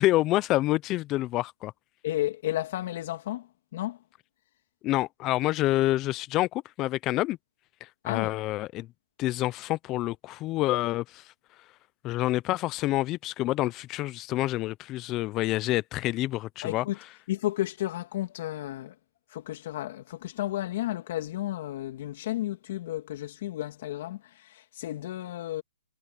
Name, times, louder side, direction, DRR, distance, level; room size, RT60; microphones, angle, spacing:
voice 1, 0.0-1.7 4.8-7.4 8.0-8.9 9.2-11.2 12.0-16.8, left 17 dB, 25° left, 0.5 m, -27 dB
voice 2, 2.0-4.0 8.0-8.3 16.6-17.0 17.3-19.0 19.3-25.6, left 14 dB, 45° left, 2.1 m, -32 dB
hypercardioid pair, 155°, 0 cm